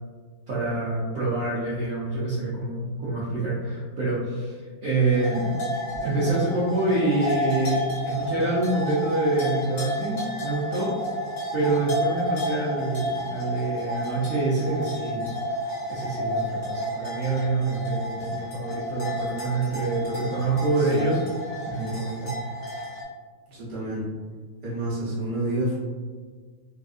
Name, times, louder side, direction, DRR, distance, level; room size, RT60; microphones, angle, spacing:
voice 1, 0.5-5.5 6.0-10.9 11.5-15.3 15.9-21.2 21.7-22.3, right 2 dB, 75° right, -9 dB, 0.7 m, -26 dB
sound 1, 5.1-23.0, equal, 40° left, 1.0 m, -31 dB
voice 2, 23.5-24.0 24.6-25.8, right 1 dB, 35° right, -8 dB, 0.8 m, -29 dB
3.3 x 2.7 x 2.4 m, 1.5 s
omnidirectional pair, 2.2 m